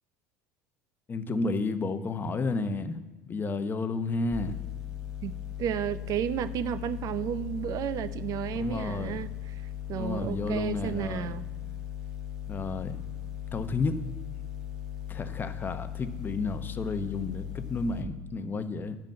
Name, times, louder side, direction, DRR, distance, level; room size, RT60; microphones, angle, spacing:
voice 1, 1.1-3.0 3.3-4.6 8.5-9.2 9.9-11.4 12.5-13.0 13.5-14.0 15.1-19.0, left 3 dB, 25° left, 9 dB, 0.8 m, -31 dB
sound 1, 4.3-18.0, left 11 dB, 5° right, 1.5 m, -38 dB
voice 2, 5.2-9.3 9.9-11.4, right 10 dB, 50° right, 15 dB, 0.5 m, -32 dB
10.5 x 5.2 x 7.5 m, 1.1 s
supercardioid pair, 90°, 7 cm